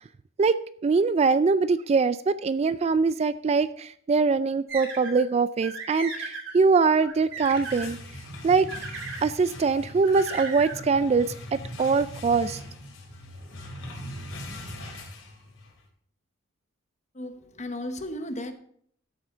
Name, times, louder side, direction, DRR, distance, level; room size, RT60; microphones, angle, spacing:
voice 1, 0.8-8.0 8.4-8.7 9.2-12.6, right 4 dB, 30° right, 14 dB, 0.3 m, -23 dB
sound 1, 4.7-5.2 5.6-6.5 7.0-7.9 8.7-9.3 10.0-10.8, right 4 dB, 65° right, 2.8 m, -36 dB
sound 2, 7.2-15.8, left 1 dB, 80° left, 3.4 m, -41 dB
voice 2, 17.2-18.5, left 1 dB, 35° left, 8 dB, 1.0 m, -35 dB
14.0 x 7.9 x 3.7 m, 0.63 s
head